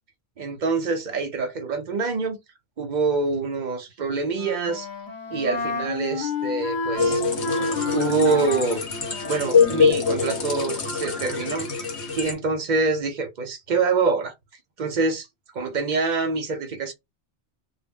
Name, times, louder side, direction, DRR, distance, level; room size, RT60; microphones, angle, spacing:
voice 1, 0.4-2.4 2.8-4.9 5.3-7.2 7.9-8.9 9.2-11.7 12.2-14.3 14.8-15.3 15.5-16.9, right 4 dB, 50° right, 0.7 m, -25 dB
Wind instrument woodwind instrument, 4.3-10.0, left 2 dB, 40° left, 0.9 m, -30 dB
sound 1, 7.0-12.3, left 5 dB, 75° left, 1.2 m, -24 dB
2.2 x 2.1 x 3.5 m
omnidirectional pair, 1.1 m